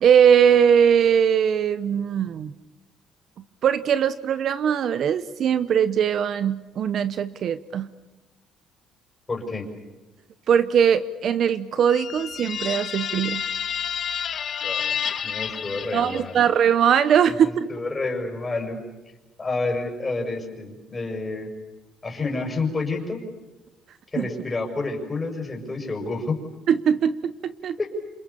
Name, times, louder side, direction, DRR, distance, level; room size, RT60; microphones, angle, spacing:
voice 1, 0.0-2.5 3.6-7.9 10.5-13.4 15.9-17.7 24.2-24.3 26.7-27.8, right 8 dB, 55° right, 13 dB, 0.9 m, -20 dB
voice 2, 9.3-9.7 14.6-16.4 17.4-18.8 19.4-21.5 22.0-23.2 24.1-26.4 27.8-27.9, left 3 dB, 20° left, 2 dB, 6.3 m, -29 dB
sound 1, 11.9-16.6, left 8 dB, 50° left, 1.4 m, -30 dB
28.0 x 28.0 x 7.1 m, 1.1 s
cardioid pair, 120°, 0 cm